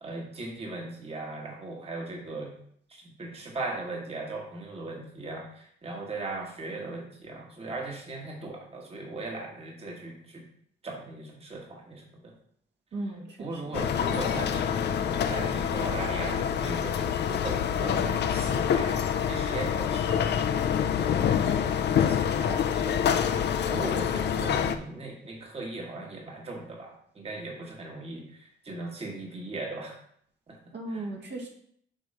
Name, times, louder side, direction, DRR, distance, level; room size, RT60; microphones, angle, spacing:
voice 1, 0.0-2.5 2.9-10.4 10.8-12.3 13.4-30.0 30.5-31.1, right 2 dB, 30° right, -1 dB, 1.4 m, -38 dB
voice 2, 12.9-13.6 30.7-31.5, right 2 dB, 60° right, 0 dB, 1.7 m, -36 dB
sound 1, 13.7-24.8, left 8 dB, 60° left, 0.6 m, -26 dB
7.7 x 3.1 x 5.4 m, 0.65 s
cardioid pair, 90°, 20 cm